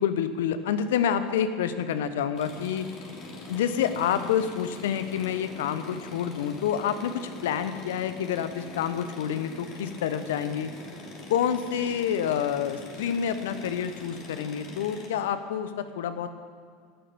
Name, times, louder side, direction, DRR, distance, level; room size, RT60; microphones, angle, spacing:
voice 1, 0.0-2.9 3.5-10.7 11.3-16.3, left 8 dB, 70° left, 11 dB, 0.9 m, -28 dB
sound 1, 2.4-15.1, left 2 dB, 45° left, 3.4 m, -43 dB
18.5 x 11.0 x 5.4 m, 2.1 s
hypercardioid pair, 80°, 0 cm